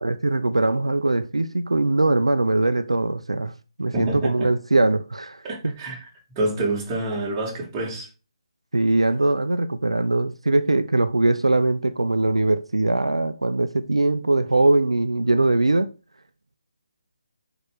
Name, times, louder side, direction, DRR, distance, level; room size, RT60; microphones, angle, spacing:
voice 1, 0.0-3.5 3.8-5.7 8.7-15.9, right 2 dB, 80° right, 0.7 m, -21 dB
voice 2, 3.9-4.5 5.4-6.0 6.4-8.1, right 2 dB, 20° right, 2.4 m, -27 dB
6.4 x 5.1 x 5.1 m
figure-of-eight pair, 150°, 3 cm